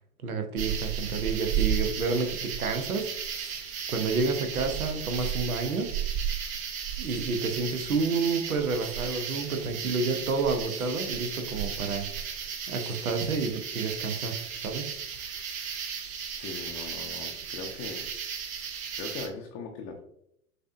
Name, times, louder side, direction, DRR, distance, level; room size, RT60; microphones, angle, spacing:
voice 1, 0.2-3.6 3.9-5.9 7.0-12.1 12.7-14.9, right 4 dB, 80° right, 5 dB, 0.9 m, -30 dB
sound 1, 0.6-19.3, right 8 dB, 20° right, 0.4 m, -34 dB
voice 2, 16.4-18.1 18.9-20.0, left 4 dB, 30° left, 1 dB, 0.6 m, -39 dB
6.4 x 2.8 x 2.6 m, 0.75 s
figure-of-eight pair, 100°, 42 cm